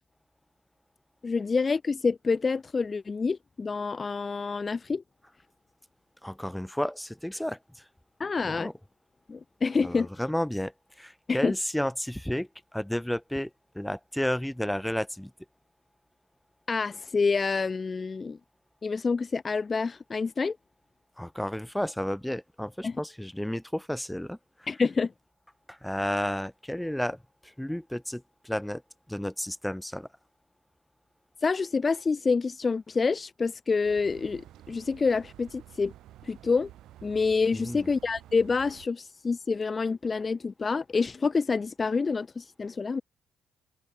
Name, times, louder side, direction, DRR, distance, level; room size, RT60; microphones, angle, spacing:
voice 1, 1.2-5.0 8.2-8.7 9.3-10.1 11.3-11.5 16.7-18.4 18.8-20.6 22.8-23.0 24.7-25.1 31.4-35.9 36.2-36.7 37.0-43.0, left 4 dB, 35° left, 0.3 m, -27 dB
voice 2, 6.2-7.6 8.4-8.7 9.8-10.7 11.0-13.5 13.7-15.3 21.2-24.4 25.7-28.8 29.1-30.1 37.5-37.9, equal, 5° left, 0.8 m, -32 dB
sound 1, 33.8-38.9, right 13 dB, 85° right, 7.5 m, -51 dB
cardioid pair, 90°, 0 cm